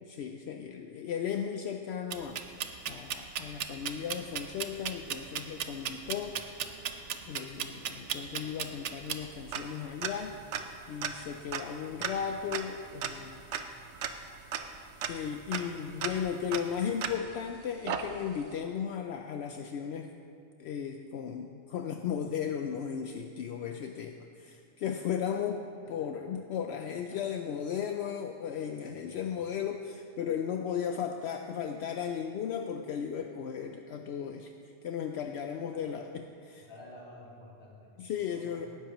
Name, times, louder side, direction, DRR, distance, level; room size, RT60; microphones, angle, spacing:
voice 1, 0.0-2.4 2.9-6.4 7.3-10.4 10.9-13.4 14.7-14.8 15.1-20.1 20.6-25.6 25.9-34.5 34.8-36.0 36.5-36.6 38.0-38.7, left 8 dB, 70° left, 5 dB, 0.8 m, -35 dB
sound 1, 2.1-17.5 17.9-18.5, right 7 dB, 80° right, 1.0 m, -37 dB
voice 2, 25.8-26.2 27.1-27.4 28.9-29.4 35.7-36.0 36.6-37.9 38.3-38.7, left 1 dB, 50° left, -8 dB, 3.6 m, -53 dB
18.0 x 10.5 x 3.0 m, 2.5 s
omnidirectional pair, 1.2 m